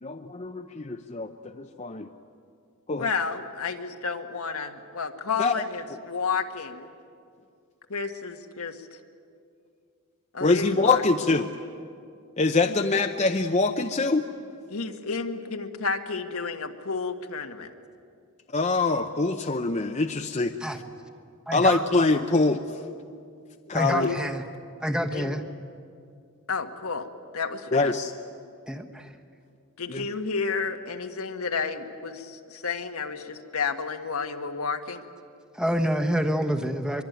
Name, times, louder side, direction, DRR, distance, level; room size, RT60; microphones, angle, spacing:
voice 1, 0.0-2.1 2.9-3.1 5.4-5.5 10.4-11.5 12.4-14.2 18.5-20.5 21.5-22.6 23.7-24.1 27.7-28.1 29.9-30.0, left 3 dB, 30° left, 5 dB, 0.7 m, -24 dB
voice 2, 3.0-6.9 7.9-9.0 10.3-11.0 12.7-12.8 14.7-17.7 23.9-24.2 25.1-25.3 26.5-27.1 27.3-27.9 29.8-35.0, left 5 dB, 85° left, 6 dB, 1.6 m, -31 dB
voice 3, 21.5-21.8 23.7-24.4 24.8-25.4 28.7-29.1 35.5-37.0, equal, 5° right, 4 dB, 1.2 m, -27 dB
24.5 x 23.0 x 9.3 m, 2.4 s
head